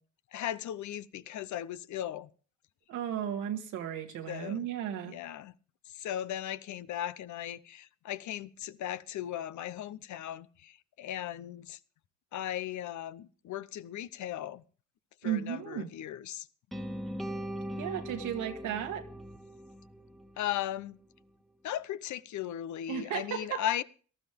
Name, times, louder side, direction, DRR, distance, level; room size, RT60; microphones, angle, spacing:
voice 1, 0.3-2.3 4.3-4.7 5.0-5.5 5.9-11.8 12.3-14.6 15.2-16.5 20.4-21.0 21.6-23.8, left 11 dB, 70° left, 0.8 m, -37 dB
voice 2, 2.9-5.2 15.2-15.9 17.8-19.1 22.9-23.6, right 9 dB, 90° right, 2.0 m, -34 dB
sound 1, 16.7-20.8, equal, ahead, 1.2 m, -40 dB
18.5 x 12.5 x 3.5 m
cardioid pair, 90°, 30 cm